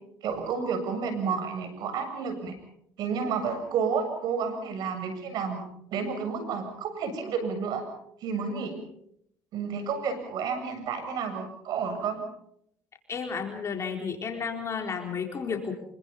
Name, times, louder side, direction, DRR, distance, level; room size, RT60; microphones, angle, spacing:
voice 1, 0.2-2.5 3.0-5.6 5.9-7.8 8.2-8.7 9.5-12.2, right 6 dB, 65° right, 8 dB, 7.5 m, -30 dB
voice 2, 13.1-15.7, left 6 dB, 40° left, 3 dB, 4.2 m, -32 dB
26.5 x 24.0 x 5.6 m, 0.72 s
supercardioid pair, 80°, 7 cm